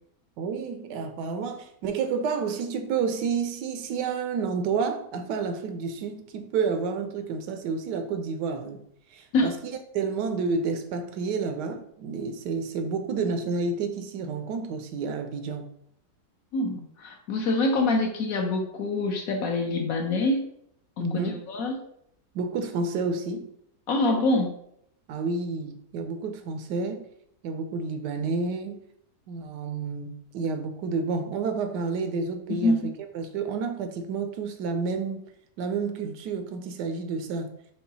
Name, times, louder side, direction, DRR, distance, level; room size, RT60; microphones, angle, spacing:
voice 1, 0.4-8.8 9.1-15.7 21.0-21.4 22.3-23.5 25.1-27.1 27.4-28.8 29.3-32.8 33.1-35.2 35.6-37.5, right 4 dB, 85° right, 1.2 m, -30 dB
voice 2, 16.5-20.5 21.0-21.7 23.9-24.5 32.5-32.8, left 2 dB, 65° left, 1.0 m, -25 dB
5.6 x 2.3 x 4.0 m
omnidirectional pair, 1.8 m